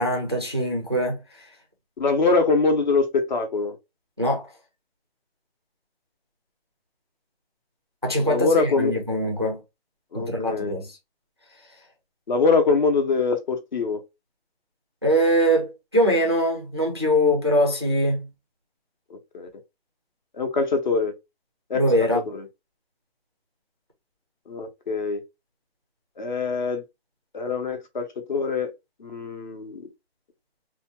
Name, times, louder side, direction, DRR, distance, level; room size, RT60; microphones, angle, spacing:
voice 1, 0.0-1.5 4.2-4.5 8.0-9.6 10.1-11.0 15.0-18.3 21.7-22.2, equal, 25° right, 0.3 m, -22 dB
voice 2, 2.0-3.8 8.2-8.9 10.1-10.7 12.3-14.0 19.3-19.5 20.4-21.1 21.7-21.8 22.3-22.4 24.5-25.2 26.2-26.8 27.3-28.7 29.0-29.8, left 4 dB, 45° left, 0.7 m, -23 dB
2.7 x 2.2 x 2.8 m
hypercardioid pair, 165°, 31 cm